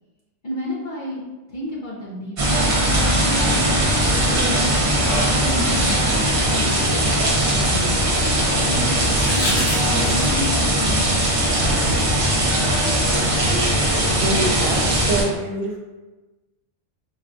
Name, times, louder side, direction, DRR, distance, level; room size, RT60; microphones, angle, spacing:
voice 1, 0.4-1.2 1.5-2.7 3.3-3.9 4.2-4.8 5.2-7.9 8.6-9.5 10.1-11.1 11.5-12.4, left 1 dB, 50° left, -5 dB, 0.6 m, -32 dB
sound 1, 2.4-15.2, right 1 dB, 50° right, 1.1 m, -19 dB
sound 2, 5.8-8.1 9.0-10.5 12.2-12.3, left 1 dB, 80° left, 1.4 m, -32 dB
voice 2, 14.1-15.8, right 2 dB, 80° right, 1 dB, 1.0 m, -26 dB
4.2 x 2.3 x 2.5 m, 1.2 s
omnidirectional pair, 1.3 m